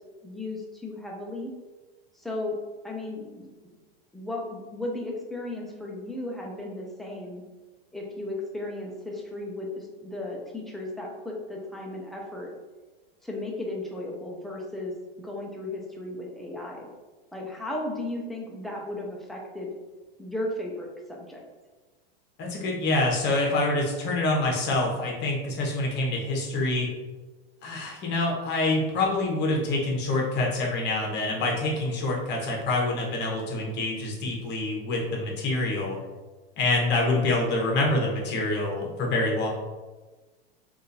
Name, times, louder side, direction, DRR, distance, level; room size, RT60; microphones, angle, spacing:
voice 1, 0.2-1.5 2.2-2.6 2.8-3.7 4.1-7.4 7.9-12.5 13.2-14.9 15.2-16.9 17.3-19.7 20.2-21.4, left 2 dB, ahead, -2 dB, 0.4 m, -35 dB
voice 2, 22.4-26.9 27.6-36.0 36.6-39.5, left 2 dB, 35° left, -1 dB, 1.0 m, -26 dB
3.6 x 2.5 x 2.7 m, 1.2 s
hypercardioid pair, 115°, 31 cm